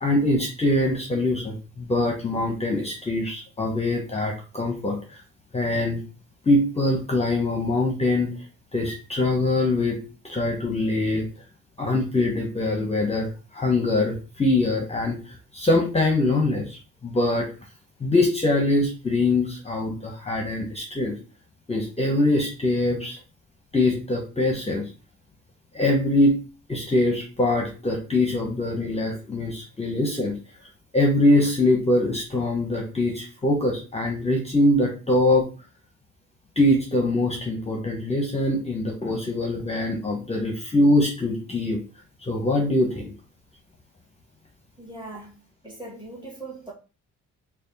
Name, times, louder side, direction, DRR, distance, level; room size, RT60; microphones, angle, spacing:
voice 1, 0.0-5.2 5.5-6.0 6.5-8.4 8.7-10.0 10.2-11.3 11.8-17.5 18.0-21.1 21.7-23.2 23.7-24.9 25.7-26.4 26.7-30.3 30.9-35.5 36.6-41.8 42.3-43.1, left 2 dB, 20° left, 0.8 m, -23 dB
voice 2, 44.8-46.7, right 2 dB, 15° right, 1.8 m, -40 dB
3.4 x 2.4 x 3.9 m
cardioid pair, 90°, 30 cm